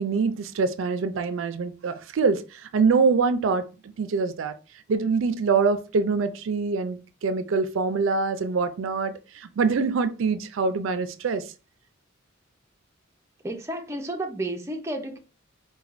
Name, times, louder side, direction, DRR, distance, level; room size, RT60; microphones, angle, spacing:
voice 1, 0.0-3.7 4.0-4.5 4.9-11.4, right 4 dB, 80° right, 0.4 m, -24 dB
voice 2, 13.4-15.2, right 1 dB, 15° right, 0.5 m, -31 dB
4.3 x 2.2 x 2.4 m
head